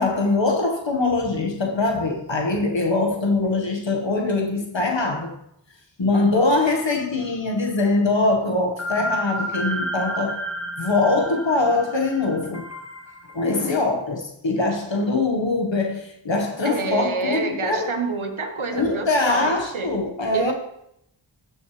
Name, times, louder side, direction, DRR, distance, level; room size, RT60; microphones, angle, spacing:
voice 1, 0.0-5.3 6.0-10.4 10.8-12.7 13.3-17.9 18.7-20.5, left 3 dB, 70° left, 1.6 m, -22 dB
sound 1, 6.4-7.3 7.5-7.6 8.8-13.7, equal, 35° left, 1.1 m, -31 dB
voice 2, 16.6-19.9 20.3-20.5, right 4 dB, 90° right, 1.3 m, -27 dB
14.0 x 6.3 x 3.3 m
wide cardioid pair, 60°, 47 cm